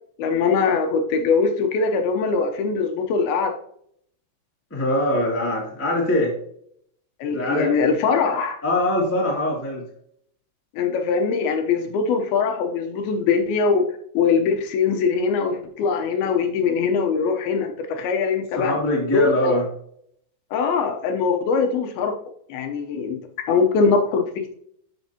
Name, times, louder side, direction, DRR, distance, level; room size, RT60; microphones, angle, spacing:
voice 1, 0.2-3.5 7.2-8.6 10.7-13.9 14.1-18.7 19.1-19.6 20.5-22.1 22.5-23.2 23.5-24.5, left 5 dB, 75° left, 5 dB, 2.4 m, -22 dB
voice 2, 4.7-6.3 7.3-7.7 8.6-9.8 18.6-19.6, left 1 dB, 15° left, -3 dB, 0.5 m, -22 dB
12.5 x 5.3 x 2.9 m, 0.68 s
omnidirectional pair, 5.3 m